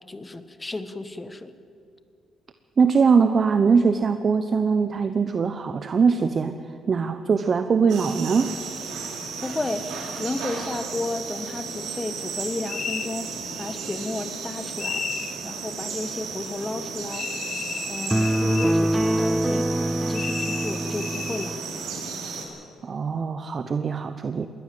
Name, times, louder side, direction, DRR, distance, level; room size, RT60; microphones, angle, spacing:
voice 1, 0.1-1.5 9.4-17.3 17.8-19.7 20.1-21.6, left 2 dB, 20° left, 11 dB, 1.4 m, -33 dB
voice 2, 2.8-6.6 6.9-8.6 22.8-24.5, right 5 dB, 45° right, 9 dB, 0.9 m, -21 dB
sound 1, 7.9-22.5, right 5 dB, 80° right, 4.3 m, -34 dB
sound 2, 12.7-13.1 14.8-15.4 17.1-18.8 20.1-21.5, left 7 dB, 60° left, 1.1 m, -33 dB
sound 3, 18.1-21.6, right 1 dB, 10° right, 0.4 m, -24 dB
21.5 x 17.0 x 7.8 m, 2.6 s
cardioid pair, 90°, 0 cm